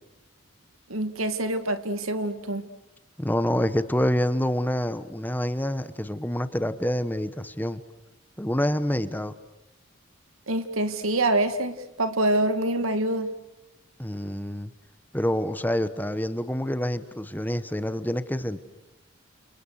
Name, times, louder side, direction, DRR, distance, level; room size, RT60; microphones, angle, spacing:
voice 1, 0.9-2.7 10.5-13.3, right 1 dB, 90° right, 2.3 m, -26 dB
voice 2, 3.2-7.8 8.4-9.3 14.0-14.7 15.1-18.6, left 1 dB, 10° left, 1.2 m, -27 dB
29.5 x 28.5 x 6.5 m
head